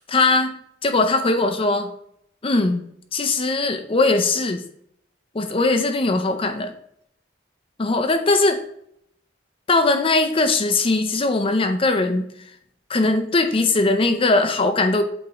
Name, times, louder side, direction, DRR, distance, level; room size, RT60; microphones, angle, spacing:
voice 1, 0.1-0.6 0.8-1.9 2.4-2.9 3.1-4.6 5.3-6.7 7.8-8.6 9.7-12.2 12.9-15.0, left 3 dB, 30° left, 6 dB, 0.6 m, -20 dB
8.5 x 3.7 x 3.0 m, 0.71 s
head